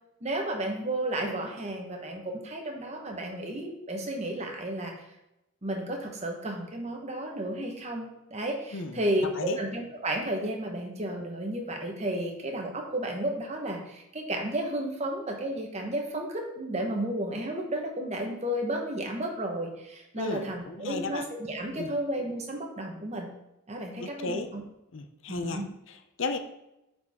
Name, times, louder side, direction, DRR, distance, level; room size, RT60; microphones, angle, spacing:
voice 1, 0.2-4.9 5.6-23.3 23.7-24.6 25.3-25.6, right 1 dB, 30° right, 1 dB, 1.2 m, -32 dB
voice 2, 8.7-9.6 20.2-21.3 21.8-21.9 24.0-24.5 24.9-26.4, left 3 dB, 65° left, 8 dB, 0.6 m, -35 dB
8.5 x 4.5 x 3.6 m, 0.89 s
head